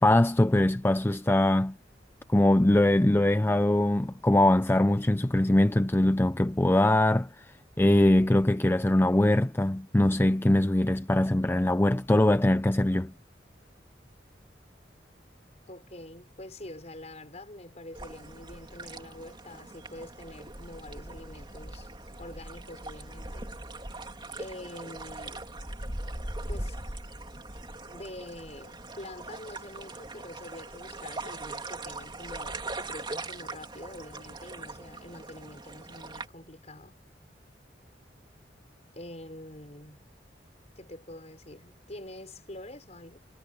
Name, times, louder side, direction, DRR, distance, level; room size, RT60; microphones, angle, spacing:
voice 1, 0.0-1.8 2.3-7.4 7.8-13.1, left 1 dB, 15° left, 0.5 m, -22 dB
voice 2, 15.7-21.9 22.2-23.5 24.4-25.4 26.5-26.8 27.9-37.0 38.9-40.0 40.8-43.2, left 1 dB, 40° left, 5.8 m, -45 dB
sound 1, 17.9-36.3, right 2 dB, 25° right, 3.1 m, -41 dB
head